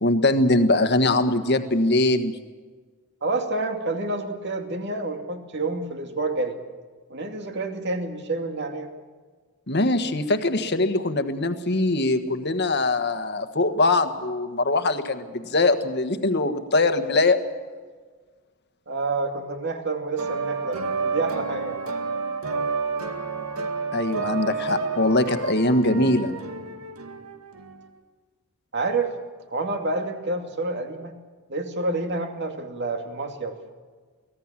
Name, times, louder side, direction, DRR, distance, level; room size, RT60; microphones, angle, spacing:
voice 1, 0.0-2.3 9.7-17.4 23.9-26.3, left 2 dB, 50° left, 9 dB, 1.5 m, -22 dB
voice 2, 3.2-6.6 7.1-8.9 18.9-21.8 28.7-29.1 29.5-31.1 31.5-33.6, right 3 dB, 50° right, 5 dB, 2.5 m, -28 dB
sound 1, 20.2-27.8, right 4 dB, 75° right, 2.0 m, -30 dB
24.0 x 18.0 x 7.5 m, 1.5 s
head